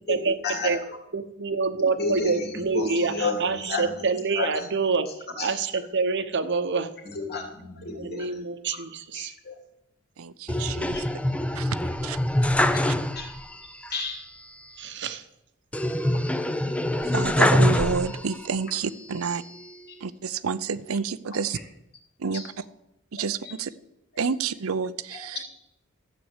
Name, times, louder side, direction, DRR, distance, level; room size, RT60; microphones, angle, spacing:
voice 1, 0.1-0.8 2.0-4.1 4.4-4.7 5.4-5.5 7.0-8.4 8.7-8.8 9.1-9.6 10.9-11.1 12.7-13.3 13.9-14.2 16.1-16.2 19.9-20.0 22.3-22.4 23.4-23.5 25.1-25.3, left 3 dB, 50° left, 3 dB, 2.7 m, -32 dB
voice 2, 1.1-5.1 5.4-6.9 7.9-9.3 14.8-15.2, right 4 dB, 55° right, 10 dB, 1.0 m, -26 dB
voice 3, 10.2-11.0 11.5-11.8 12.0-12.2 12.9-13.0 17.0-19.4 20.0-21.6 22.2-22.4 23.1-23.7 24.2-25.4, right 5 dB, 80° right, 15 dB, 0.7 m, -29 dB
sound 1, 10.5-13.5 13.8-13.9 15.7-18.5 19.0-19.8, left 1 dB, 5° left, 0.6 m, -24 dB
13.0 x 8.4 x 8.1 m, 0.84 s
head